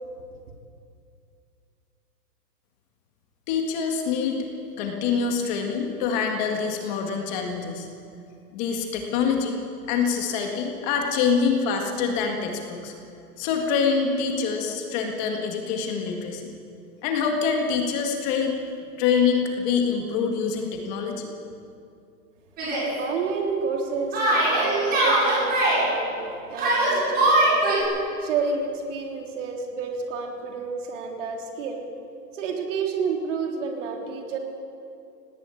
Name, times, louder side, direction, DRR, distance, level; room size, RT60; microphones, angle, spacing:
voice 1, 3.5-4.5 4.8-7.9 8.5-9.6 9.9-12.9 13.4-16.5 17.0-18.6 19.0-21.3, left 6 dB, 25° left, 3 dB, 1.9 m, -25 dB
Yell, 22.6-22.9 24.1-25.8 26.5-27.8, right 1 dB, 20° right, 7.2 m, -21 dB
voice 2, 23.0-27.6 28.0-31.8 32.3-34.4, right 5 dB, 45° right, 1 dB, 3.7 m, -30 dB
18.5 x 17.5 x 8.5 m, 2.5 s
hypercardioid pair, 155°, 49 cm